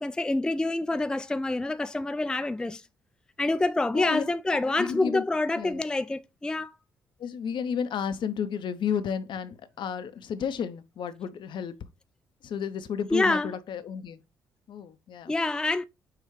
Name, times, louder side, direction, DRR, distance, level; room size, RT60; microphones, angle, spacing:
voice 1, 0.0-2.8 3.4-6.7 13.1-13.5 15.3-15.8, left 2 dB, 10° left, 0.3 m, -27 dB
voice 2, 4.8-5.2 5.6-5.8 7.2-11.7 12.4-14.2 14.7-15.3, left 7 dB, 55° left, 0.6 m, -32 dB
6.5 x 2.4 x 3.1 m
hypercardioid pair, 50°, 10 cm